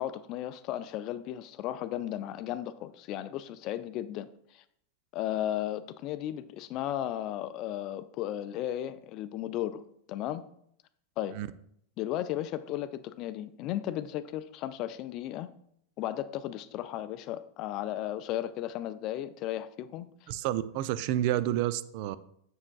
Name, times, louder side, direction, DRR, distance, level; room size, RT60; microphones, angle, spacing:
voice 1, 0.0-4.3 4.5-4.6 5.1-10.5 11.2-11.4 12.0-15.5 16.0-20.1, left 12 dB, 45° left, 14 dB, 0.4 m, -35 dB
voice 2, 20.3-22.2, right 13 dB, 50° right, 15 dB, 0.3 m, -29 dB
7.3 x 6.3 x 2.3 m, 0.71 s
figure-of-eight pair, 90°, 0 cm